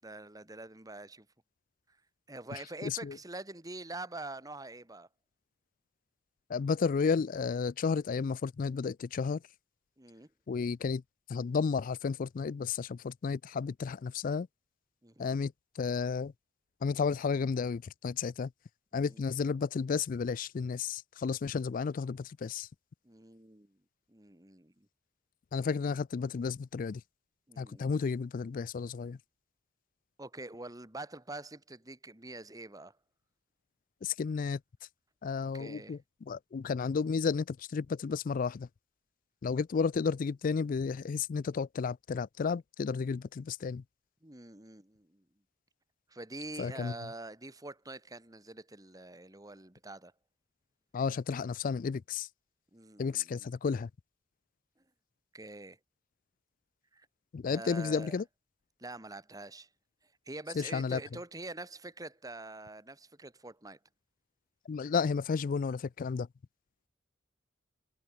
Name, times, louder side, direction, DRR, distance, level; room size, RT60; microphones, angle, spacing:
voice 1, 0.0-1.3 2.3-5.1 10.0-10.3 15.0-15.4 18.9-19.2 23.0-23.8 24.1-24.9 27.5-28.0 30.2-33.0 35.5-36.0 44.2-45.2 46.1-50.1 52.7-53.5 55.3-55.8 56.9-57.1 57.5-58.2 58.8-59.7 60.3-63.8, right 2 dB, 20° right, 1.9 m, -45 dB
voice 2, 2.8-3.2 6.5-9.4 10.5-11.0 11.3-14.5 15.2-16.3 16.8-18.5 18.9-22.7 25.5-27.0 27.6-29.2 34.0-34.6 35.2-36.0 36.3-38.7 39.4-43.8 46.6-46.9 50.9-52.3 53.0-53.9 57.3-58.2 60.5-61.0 64.7-66.3, left 5 dB, 45° left, 0.3 m, -32 dB
head